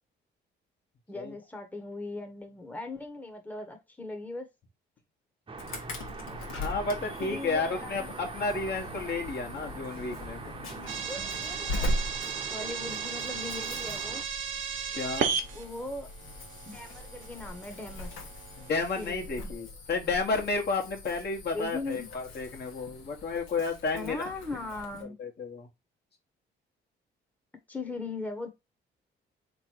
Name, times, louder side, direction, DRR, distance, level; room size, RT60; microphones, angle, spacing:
voice 1, 1.1-4.5 7.2-8.2 11.1-12.0 12.5-14.2 15.5-16.1 16.6-18.1 18.9-19.5 21.5-22.1 23.9-25.2 27.7-28.5, left 3 dB, 10° left, 0.9 m, -39 dB
sound 1, 5.5-14.2, right 4 dB, 25° right, 0.8 m, -43 dB
Insect / Alarm, 5.6-25.0, left 1 dB, 90° left, 1.2 m, -40 dB
voice 2, 6.5-10.4 14.9-15.4 18.6-24.3 25.2-25.7, left 3 dB, 55° left, 1.3 m, -32 dB
sound 2, 10.9-19.1, right 7 dB, 75° right, 0.9 m, -36 dB
3.8 x 3.1 x 4.4 m
cardioid pair, 90°, 20 cm